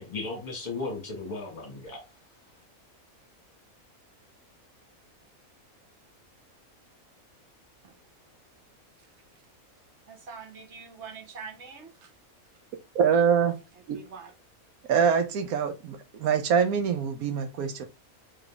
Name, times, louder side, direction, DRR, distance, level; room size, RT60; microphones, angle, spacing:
voice 1, 0.0-2.0, left 3 dB, 30° left, 1.5 m, -35 dB
voice 2, 10.1-12.1 13.8-14.3, right 5 dB, 55° right, 1.1 m, -44 dB
voice 3, 12.9-13.6 13.9-14.0 14.9-17.8, right 6 dB, 80° right, 1.2 m, -24 dB
3.9 x 3.4 x 3.5 m
omnidirectional pair, 1.5 m